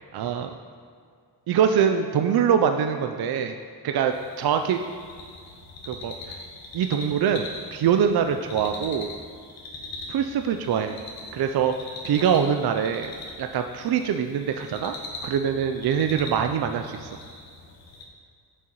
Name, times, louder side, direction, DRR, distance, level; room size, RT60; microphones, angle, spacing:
voice 1, 0.1-0.5 1.5-3.6 3.8-4.8 5.9-6.1 6.7-7.4 7.7-9.1 10.1-11.0 11.3-11.7 12.0-13.1 13.4-14.9 15.2-17.1, right 8 dB, 60° right, 6 dB, 0.5 m, -23 dB
sound 1, 4.1-18.0, left 2 dB, 85° left, 1.2 m, -41 dB
9.4 x 6.1 x 3.0 m, 2.2 s
cardioid pair, 60°, 43 cm